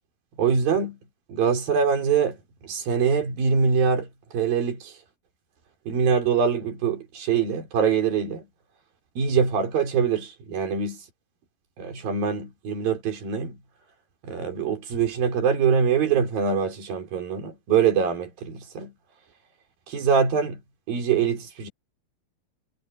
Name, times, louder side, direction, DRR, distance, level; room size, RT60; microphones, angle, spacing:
voice 1, 0.4-1.0 1.3-5.0 5.9-8.5 9.2-11.0 11.8-13.6 14.2-18.9 19.9-20.6 20.9-21.7, right 6 dB, 70° right, 6.1 m, -24 dB
omnidirectional pair, 4.2 m